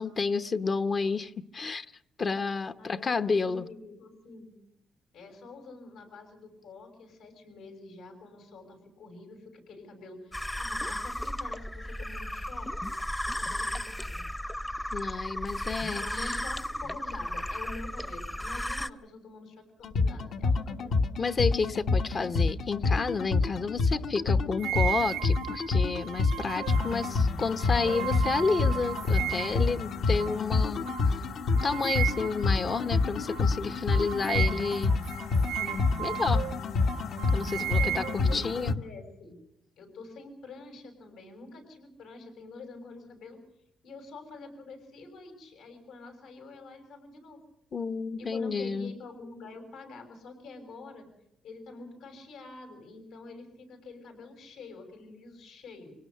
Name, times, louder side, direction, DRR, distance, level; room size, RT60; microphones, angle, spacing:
voice 1, 0.0-1.9 2.2-3.7 14.9-16.3 21.2-31.2 31.5-34.9 35.6-36.5 37.3-38.0 38.3-38.7 47.7-48.9, left 4 dB, 45° left, 10 dB, 0.8 m, -30 dB
voice 2, 2.7-4.5 5.1-13.0 13.2-14.2 16.0-21.0 37.6-39.4 39.8-43.4 43.8-47.4 48.2-51.1 51.4-55.9, left 3 dB, 85° left, 5 dB, 6.5 m, -47 dB
sound 1, 10.3-18.9, left 1 dB, 10° left, 0.7 m, -34 dB
sound 2, 19.8-38.7, left 4 dB, 70° left, 1.3 m, -27 dB
sound 3, 24.6-29.7 30.2-30.4 30.9-31.1 31.6-32.5 32.7-32.9 33.3-33.5 33.9-36.6 36.9-38.7, right 13 dB, 80° right, 0.8 m, -35 dB
24.5 x 18.5 x 6.6 m, 0.80 s
cardioid pair, 90°, 0 cm